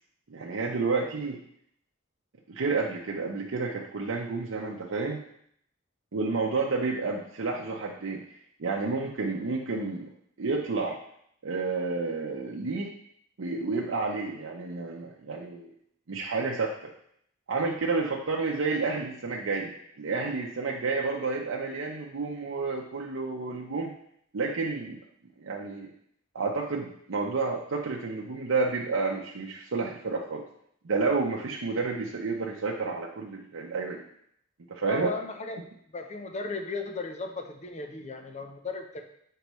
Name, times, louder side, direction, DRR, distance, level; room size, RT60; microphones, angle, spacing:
voice 1, 0.3-1.4 2.5-5.2 6.1-10.1 10.4-11.0 11.4-12.9 13.4-15.7 16.1-16.9 17.5-23.9 24.3-25.0 25.4-25.9 26.3-30.4 30.8-34.0 34.7-35.1, right 4 dB, 80° right, -2 dB, 0.7 m, -30 dB
voice 2, 34.8-35.6 35.9-39.0, left 3 dB, 35° left, 5 dB, 0.6 m, -36 dB
6.7 x 4.5 x 3.1 m, 0.68 s
head